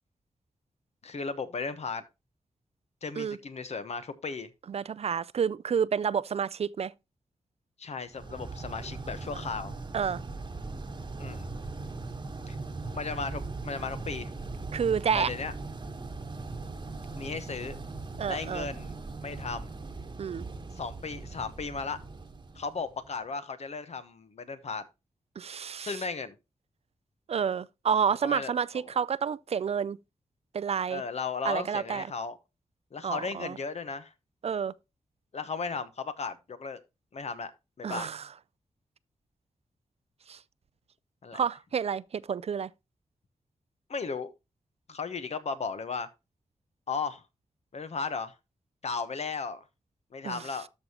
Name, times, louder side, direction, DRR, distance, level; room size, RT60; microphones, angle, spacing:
voice 1, 1.0-2.0 3.0-4.5 7.8-9.7 11.2-11.4 12.5-12.6 12.9-14.3 15.2-15.5 17.2-17.8 18.3-18.9 19.2-19.7 20.7-22.0 22.5-24.8 25.8-26.3 28.2-28.8 30.9-32.4 32.9-34.1 35.3-36.8 37.1-37.5 37.8-38.1 41.2-41.4 43.9-44.3 44.9-46.1 46.9-47.2 47.7-48.3 48.8-49.6 50.1-50.7, left 4 dB, 60° left, 1.0 m, -35 dB
voice 2, 4.7-6.9 9.9-10.2 14.7-15.3 18.2-18.7 20.2-20.5 25.4-26.0 27.3-30.0 30.5-31.0 31.4-32.1 33.0-33.6 34.4-34.7 37.8-38.3 40.3-40.4 41.3-42.7 50.2-50.4, right 7 dB, 55° right, 0.4 m, -29 dB
sound 1, 8.1-23.2, right 3 dB, 35° right, 1.2 m, -40 dB
13.0 x 5.4 x 2.9 m
wide cardioid pair, 85°, 13 cm